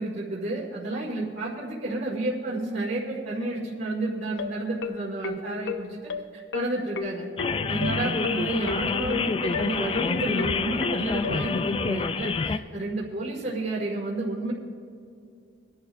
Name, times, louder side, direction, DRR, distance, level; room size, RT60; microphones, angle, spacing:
voice 1, 0.0-6.0 6.3-7.3 7.7-14.5, right 2 dB, 60° right, -6 dB, 2.0 m, -31 dB
sound 1, 4.4-11.4, left 4 dB, 65° left, 0.6 m, -33 dB
sound 2, 7.4-12.6, left 4 dB, 30° left, 0.3 m, -28 dB
24.0 x 11.0 x 2.6 m, 2.4 s
head